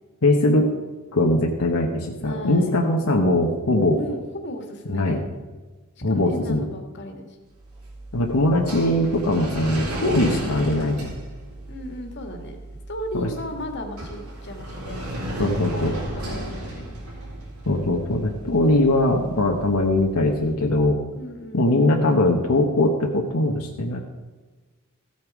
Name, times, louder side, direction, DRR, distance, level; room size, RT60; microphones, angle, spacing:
voice 1, 0.2-0.7 1.1-4.0 4.9-5.2 6.0-6.6 8.1-11.1 13.1-13.3 15.4-15.9 17.7-21.0 21.5-24.0, left 1 dB, 80° left, 1 dB, 1.2 m, -21 dB
voice 2, 2.2-2.8 4.0-5.4 6.0-7.4 11.7-12.6 12.9-17.0 21.2-21.9, equal, 50° left, 4 dB, 1.9 m, -35 dB
sound 1, 7.5-20.6, right 1 dB, 85° right, 3.9 m, -34 dB
15.0 x 8.6 x 4.9 m, 1.3 s
head